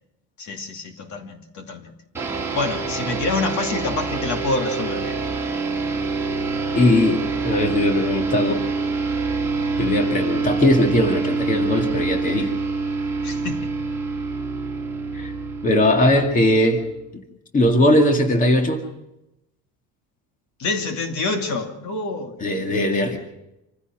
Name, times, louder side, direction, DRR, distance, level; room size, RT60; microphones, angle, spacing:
voice 1, 0.4-1.9 2.5-5.2 13.2-13.7 20.6-22.4, left 3 dB, 50° left, 5 dB, 2.6 m, -27 dB
sound 1, 2.1-17.0, right 4 dB, 5° right, 3.4 m, -26 dB
voice 2, 6.7-8.6 9.8-12.5 15.1-15.3 15.6-16.8 17.1-17.2 17.5-18.8 22.4-23.2, left 1 dB, 20° left, 3 dB, 2.2 m, -19 dB
27.5 x 16.0 x 6.2 m, 0.91 s
cardioid pair, 165°, 37 cm